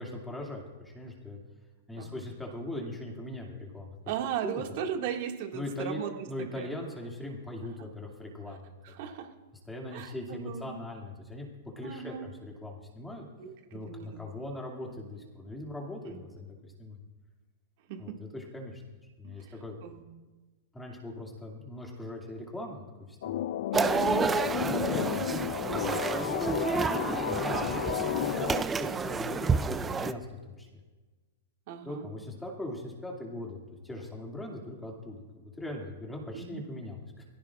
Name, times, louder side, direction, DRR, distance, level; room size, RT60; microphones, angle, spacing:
voice 1, 0.0-1.4 1.9-3.9 4.4-4.6 5.5-9.0 9.7-11.5 11.8-13.3 13.7-17.0 18.0-18.8 19.2-19.8 20.7-23.4 24.5-28.4 28.7-30.7 31.8-37.2, left 1 dB, 5° left, -1 dB, 2.4 m, -40 dB
voice 2, 2.0-2.3 4.1-6.1 6.6-6.7 8.8-9.3 9.9-10.8 11.8-12.3 13.4-13.5 13.9-14.2 16.1-16.2 17.9-18.1 19.2-19.5 19.8-20.0 23.7-24.3 24.8-24.9 28.3-28.4 30.0-30.1 31.7-32.1 36.3-36.6, right 8 dB, 45° right, 3 dB, 2.0 m, -37 dB
sound 1, 23.2-28.6, left 12 dB, 60° left, 0.4 m, -32 dB
sound 2, 23.7-30.1, right 5 dB, 10° right, 0.4 m, -30 dB
22.5 x 15.5 x 2.5 m, 1.2 s
supercardioid pair, 165°, 0 cm